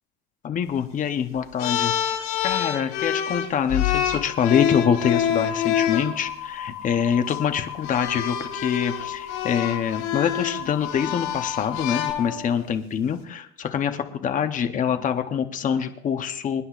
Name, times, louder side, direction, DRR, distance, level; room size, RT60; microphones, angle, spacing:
voice 1, 0.4-2.2 2.4-16.6, left 8 dB, 25° left, 7 dB, 0.8 m, -25 dB
sound 1, 1.6-6.1 7.1-7.3 7.8-12.7, left 9 dB, 65° left, 2.2 m, -26 dB
sound 2, 4.1-12.1, left 10 dB, 85° left, 0.9 m, -36 dB
26.5 x 9.9 x 2.4 m, 0.71 s
cardioid pair, 175°, 33 cm